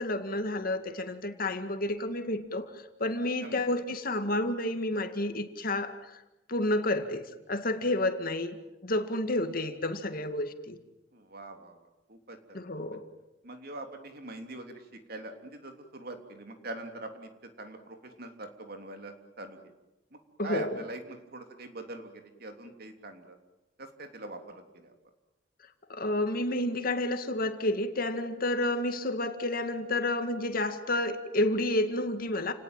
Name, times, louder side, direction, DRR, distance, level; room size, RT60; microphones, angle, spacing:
voice 1, 0.0-6.1 6.5-8.6 8.8-10.8 12.5-13.0 20.4-20.8 25.9-32.5, left 1 dB, 50° left, 7 dB, 2.2 m, -30 dB
voice 2, 11.1-12.6 13.4-14.8 15.1-19.6 20.4-23.4 23.8-24.9, right 2 dB, 55° right, 5 dB, 3.3 m, -43 dB
29.5 x 19.0 x 9.1 m, 1.0 s
head